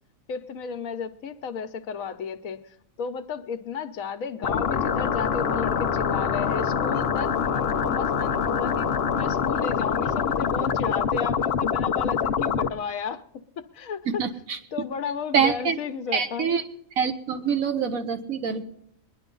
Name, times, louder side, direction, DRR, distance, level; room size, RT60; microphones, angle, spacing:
voice 1, 0.3-14.1 14.7-16.5, left 6 dB, 80° left, 9 dB, 1.3 m, -33 dB
sound 1, 4.4-12.7, left 7 dB, 55° left, 0.9 m, -25 dB
voice 2, 14.2-14.6 15.3-15.8 16.1-16.6 17.0-18.6, right 6 dB, 85° right, 8 dB, 1.5 m, -25 dB
22.0 x 10.5 x 3.8 m, 0.71 s
omnidirectional pair, 1.4 m